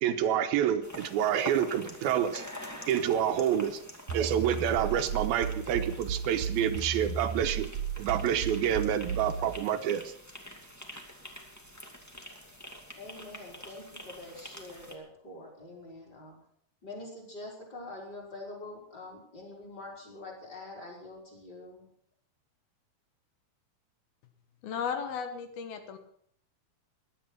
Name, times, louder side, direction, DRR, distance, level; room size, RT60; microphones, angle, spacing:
voice 1, 0.0-2.4 2.9-3.8 4.1-7.7 8.0-10.1, right 10 dB, 80° right, 8 dB, 2.7 m, -28 dB
sound 1, 0.8-15.0, equal, 10° left, 1.0 m, -46 dB
sound 2, 4.1-9.6, right 6 dB, 65° right, 2.3 m, -35 dB
voice 2, 12.9-16.3 16.8-21.9, left 2 dB, 25° left, 0 dB, 5.3 m, -45 dB
voice 3, 24.6-26.0, left 6 dB, 75° left, 7 dB, 3.2 m, -35 dB
17.5 x 11.5 x 6.0 m, 0.66 s
omnidirectional pair, 4.4 m